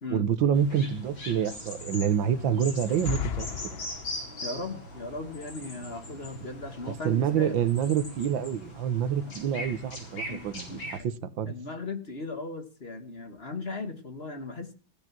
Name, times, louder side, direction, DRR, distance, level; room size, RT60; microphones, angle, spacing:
voice 1, 0.1-3.5 7.0-11.5, right 8 dB, 80° right, 1.7 m, -27 dB
sound 1, 0.5-11.0, left 1 dB, 90° left, 5.4 m, -41 dB
sound 2, 2.8-4.5, left 8 dB, 70° left, 0.5 m, -35 dB
voice 2, 4.4-7.6 9.2-9.3 10.3-10.4 10.7-10.8 11.4-14.7, left 3 dB, 35° left, 1.5 m, -37 dB
15.0 x 9.0 x 6.0 m
omnidirectional pair, 2.1 m